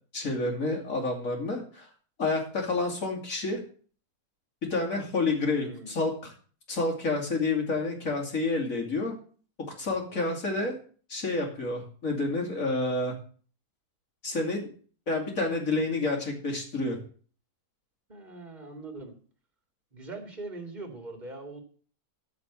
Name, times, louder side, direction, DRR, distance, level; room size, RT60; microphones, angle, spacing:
voice 1, 0.1-1.9 2.2-3.6 4.7-6.3 6.7-9.1 9.8-10.8 11.1-13.1 14.2-14.7 15.1-17.0, left 3 dB, 60° left, 1 dB, 3.1 m, -29 dB
voice 2, 5.5-5.9 10.1-10.3 18.1-19.1 19.9-21.6, right 3 dB, 30° right, 4 dB, 2.2 m, -41 dB
14.0 x 5.2 x 7.2 m, 0.44 s
omnidirectional pair, 1.6 m